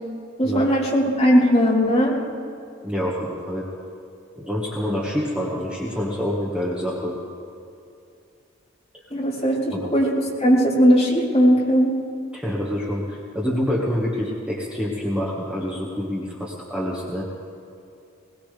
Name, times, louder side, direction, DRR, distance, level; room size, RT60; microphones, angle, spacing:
voice 1, 0.4-2.1 9.1-11.9, equal, 30° left, -6 dB, 3.8 m, -18 dB
voice 2, 2.8-3.7 4.3-7.2 9.7-9.8 12.3-17.3, equal, 5° right, -5 dB, 1.7 m, -27 dB
21.0 x 20.0 x 3.4 m, 2.5 s
head